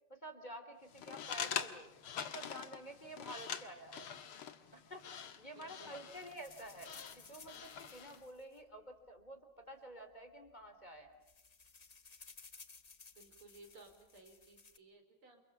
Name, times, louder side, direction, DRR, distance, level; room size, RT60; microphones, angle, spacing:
voice 1, 0.1-1.9 2.2-4.1 4.7-11.2, right 1 dB, 20° left, 7 dB, 3.3 m, -50 dB
sound 1, 0.9-8.2, left 8 dB, 75° left, 2.3 m, -45 dB
voice 2, 5.6-6.1 13.2-15.4, right 3 dB, 90° right, 4 dB, 5.8 m, -59 dB
sound 2, 6.1-9.3 10.1-10.2 10.5-10.7 11.0-14.8, left 4 dB, 35° left, 0.6 m, -59 dB
29.5 x 28.0 x 7.2 m, 0.87 s
omnidirectional pair, 2.3 m